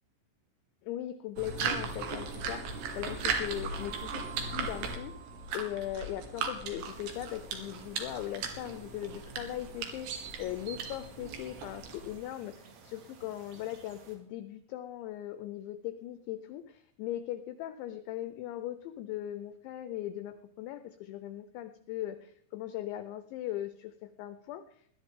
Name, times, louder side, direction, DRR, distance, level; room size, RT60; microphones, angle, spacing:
voice 1, 0.8-5.1 5.5-24.8, left 13 dB, 85° left, 10 dB, 2.6 m, -39 dB
sound 1, 1.4-12.2, right 5 dB, 60° right, 3.2 m, -37 dB
Keyboard (musical), 3.7-6.5, right 10 dB, 40° right, 5.5 m, -50 dB
sound 2, 6.8-14.2, right 6 dB, 80° right, 4.9 m, -51 dB
20.5 x 12.0 x 3.7 m, 0.65 s
omnidirectional pair, 6.0 m